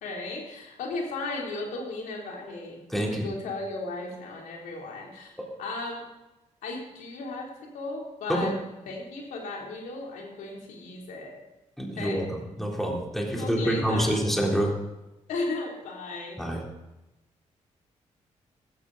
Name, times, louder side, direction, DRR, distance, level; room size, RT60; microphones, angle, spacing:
voice 1, 0.0-5.3 5.6-6.0 6.6-7.5 7.7-8.5 8.9-11.3 12.0-12.3 13.4-14.2 15.3-16.4, left 3 dB, 90° left, -1 dB, 3.6 m, -35 dB
voice 2, 2.9-3.3 8.3-8.5 11.8-14.7 16.4-16.6, equal, ahead, -2 dB, 3.8 m, -27 dB
15.5 x 13.5 x 4.1 m, 1.0 s
cardioid pair, 60°, 13 cm